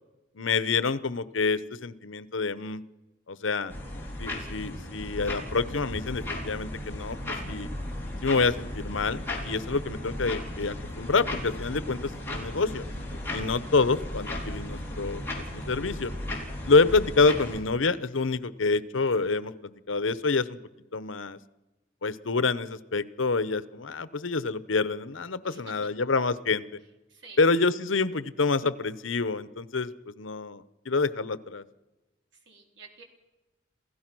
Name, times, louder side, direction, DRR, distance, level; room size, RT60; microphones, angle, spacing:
voice 1, 0.4-2.8 3.3-3.7 4.2-7.2 7.5-7.7 8.2-12.8 13.3-16.1 16.6-20.6 20.9-21.4 22.0-26.6 27.4-31.6, left 4 dB, 90° left, 16 dB, 0.9 m, -27 dB
sound 1, 3.7-17.6, left 1 dB, 10° left, 4.1 m, -36 dB
voice 2, 25.4-25.8 27.1-27.4 32.5-33.0, right 4 dB, 65° right, 3 dB, 3.8 m, -50 dB
28.0 x 16.0 x 6.2 m, 1.1 s
head